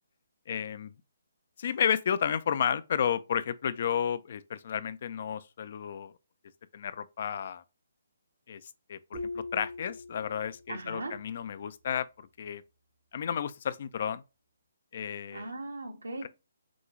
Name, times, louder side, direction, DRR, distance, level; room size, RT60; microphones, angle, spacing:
voice 1, 0.5-0.9 1.6-6.1 6.7-7.6 8.5-8.6 8.9-12.6 13.1-14.2 14.9-15.5 16.2-16.3, left 8 dB, 50° left, 0.4 m, -32 dB
sound 1, 9.1-10.8, left 3 dB, 65° right, 1.5 m, -40 dB
voice 2, 10.7-11.2 15.3-16.3, right 2 dB, 85° right, 1.4 m, -38 dB
6.1 x 2.4 x 3.0 m
hypercardioid pair, 145°, 0 cm